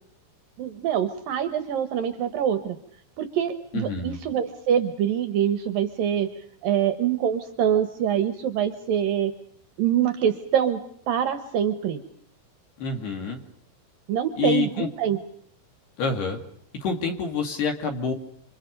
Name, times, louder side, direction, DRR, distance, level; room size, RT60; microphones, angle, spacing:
voice 1, 0.6-2.8 3.2-6.3 6.6-9.3 9.8-10.8 11.1-12.0 14.1-15.2, right 9 dB, 70° right, 10 dB, 2.2 m, -25 dB
voice 2, 3.7-4.2 12.8-13.4 14.4-14.9 16.0-16.4 16.8-18.1, left 5 dB, 60° left, 4 dB, 4.1 m, -27 dB
29.0 x 27.0 x 5.3 m, 0.65 s
omnidirectional pair, 5.6 m